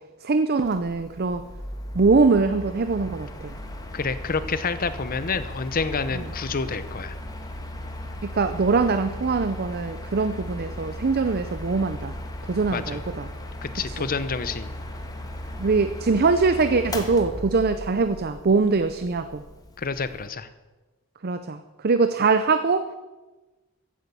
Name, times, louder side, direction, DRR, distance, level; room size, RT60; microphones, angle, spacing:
voice 1, 0.2-1.4 1.9-3.5 8.2-12.1 12.5-13.3 13.9-14.0 15.6-19.4 21.2-22.9, right 4 dB, 45° right, 10 dB, 0.6 m, -22 dB
Mechanical fan, 0.6-20.3, left 1 dB, 15° left, 1.4 m, -37 dB
voice 2, 3.9-7.1 12.7-13.0 13.6-14.7 19.8-20.5, left 4 dB, 40° left, 12 dB, 0.8 m, -28 dB
15.0 x 8.8 x 6.9 m, 1.2 s
head